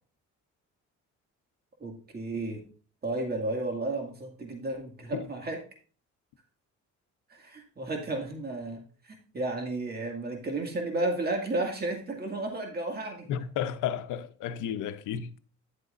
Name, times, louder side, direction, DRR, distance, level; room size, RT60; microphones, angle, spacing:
voice 1, 1.8-2.6 3.0-5.6 7.3-13.3, right 2 dB, 30° right, 2.0 m, -33 dB
voice 2, 13.3-15.3, left 9 dB, 85° left, 0.7 m, -32 dB
10.5 x 8.0 x 2.5 m
cardioid pair, 90°, 30 cm